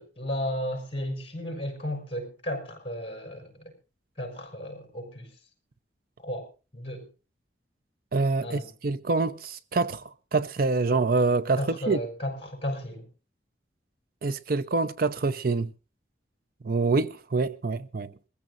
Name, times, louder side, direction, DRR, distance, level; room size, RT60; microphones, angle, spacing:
voice 1, 0.0-3.7 4.2-5.3 6.2-6.5 6.7-7.1 8.4-8.7 11.6-13.1, equal, 30° left, 5.4 m, -34 dB
voice 2, 8.1-10.0 10.3-11.6 11.9-12.0 14.2-15.7 16.6-18.1, right 3 dB, 55° right, 0.6 m, -26 dB
22.0 x 15.0 x 2.6 m
head